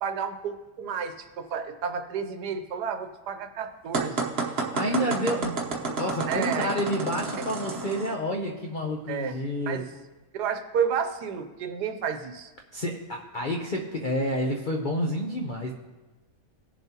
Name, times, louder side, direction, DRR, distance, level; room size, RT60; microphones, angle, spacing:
voice 1, 0.0-4.3 6.3-6.8 7.4-7.5 9.1-9.4 9.7-9.9 10.3-12.5, right 7 dB, 80° right, 8 dB, 1.3 m, -31 dB
sound 1, 3.9-8.1, right 4 dB, 45° right, 1.0 m, -30 dB
voice 2, 4.5-9.8 12.7-15.7, equal, 50° left, 1 dB, 0.5 m, -29 dB
17.5 x 7.1 x 2.9 m, 1.1 s
omnidirectional pair, 1.8 m